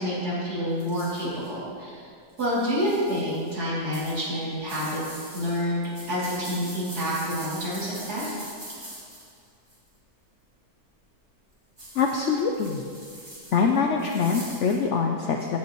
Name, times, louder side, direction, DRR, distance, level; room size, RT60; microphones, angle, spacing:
voice 1, 0.0-2.1 2.4-8.4, equal, 60° right, -9 dB, 3.2 m, -28 dB
sound 1, 0.8-1.5 2.3-3.5 3.9-9.9 11.8-14.8, right 1 dB, 25° right, 2.6 m, -43 dB
voice 2, 11.9-12.8 13.5-15.6, left 5 dB, 85° left, 3 dB, 0.6 m, -24 dB
15.5 x 5.7 x 3.0 m, 2.2 s
omnidirectional pair, 1.9 m